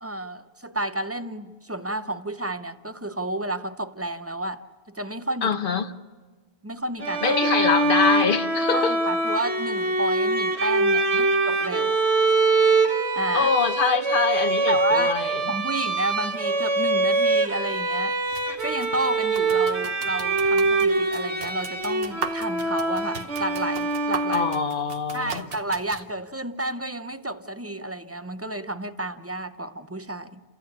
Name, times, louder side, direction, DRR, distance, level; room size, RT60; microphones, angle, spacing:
voice 1, 0.0-4.6 4.9-5.5 6.6-7.2 8.7-12.0 13.2-13.5 14.7-15.2 15.5-18.2 18.6-24.5 25.1-30.4, right 1 dB, 15° right, 0.6 m, -31 dB
voice 2, 5.4-5.9 7.2-9.0 11.1-11.2 13.3-15.4 24.3-25.4, left 5 dB, 55° left, 1.0 m, -24 dB
Bowed string instrument, 7.0-24.8, right 3 dB, 90° right, 1.8 m, -24 dB
sound 1, 18.3-26.1, right 5 dB, 65° right, 1.2 m, -39 dB
29.5 x 14.5 x 8.6 m
omnidirectional pair, 1.1 m